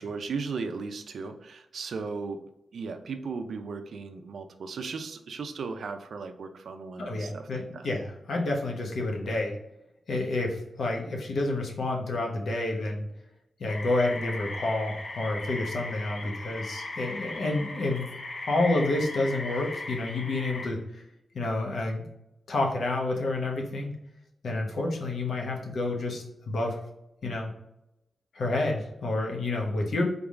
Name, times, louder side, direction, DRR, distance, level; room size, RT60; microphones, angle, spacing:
voice 1, 0.0-2.4 2.7-7.9, right 4 dB, 70° right, 6 dB, 0.5 m, -36 dB
voice 2, 7.0-9.6 10.1-13.0 13.6-18.1 18.4-21.0 21.3-22.1 22.5-24.0 24.4-26.8 27.2-27.5 28.3-30.0, left 2 dB, 70° left, 0 dB, 1.0 m, -29 dB
sound 1, 13.7-20.7, left 2 dB, 50° left, 0.9 m, -38 dB
3.9 x 3.6 x 3.6 m, 0.86 s
wide cardioid pair, 130°, 0 cm